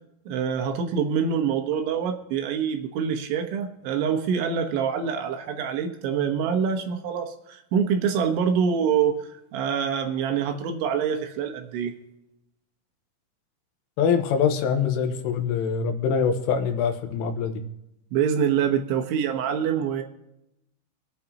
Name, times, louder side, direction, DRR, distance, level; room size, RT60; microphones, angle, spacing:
voice 1, 0.3-11.9 18.1-20.0, right 7 dB, 75° right, 5 dB, 3.3 m, -25 dB
voice 2, 14.0-17.6, left 6 dB, 80° left, 6 dB, 3.6 m, -24 dB
25.5 x 9.1 x 2.9 m, 0.85 s
omnidirectional pair, 5.9 m